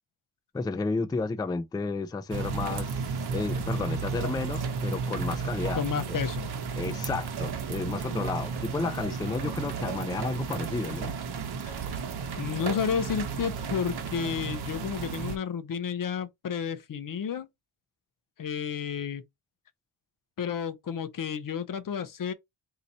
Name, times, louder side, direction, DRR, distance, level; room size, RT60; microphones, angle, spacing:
voice 1, 0.5-5.8 6.1-6.2 6.8-11.1, left 3 dB, 10° left, 0.3 m, -32 dB
sound 1, 2.3-15.4, right 5 dB, 50° right, 1.0 m, -33 dB
voice 2, 5.8-6.5 11.6-11.8 12.4-17.5 18.4-19.2 20.4-22.3, left 7 dB, 40° left, 0.7 m, -31 dB
4.0 x 2.8 x 4.1 m
wide cardioid pair, 130°, 49 cm